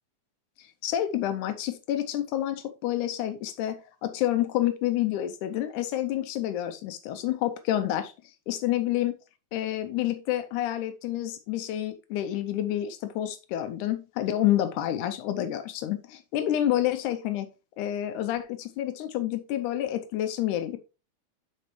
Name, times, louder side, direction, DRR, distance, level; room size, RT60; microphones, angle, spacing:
voice 1, 0.6-9.1 9.5-17.5 17.8-20.8, left 12 dB, 90° left, 2.2 m, -29 dB
12.0 x 4.2 x 3.1 m
omnidirectional pair, 3.4 m